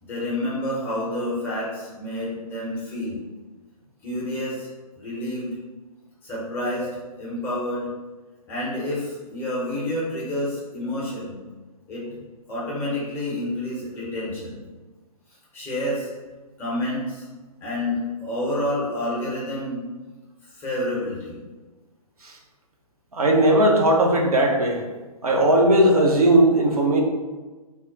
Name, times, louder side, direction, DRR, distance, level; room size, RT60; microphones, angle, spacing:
voice 1, 0.0-3.2 4.0-4.7 5.0-5.5 6.2-6.9 7.2-7.9 8.5-11.4 11.9-12.0 12.5-14.6 15.5-16.1 16.6-17.3 17.6-19.8 20.5-21.4, left 1 dB, 10° left, -7 dB, 0.6 m, -29 dB
voice 2, 23.1-24.8 25.2-27.0, right 1 dB, 70° right, 0 dB, 0.6 m, -17 dB
2.2 x 2.1 x 3.6 m, 1.3 s
figure-of-eight pair, 130°, 20 cm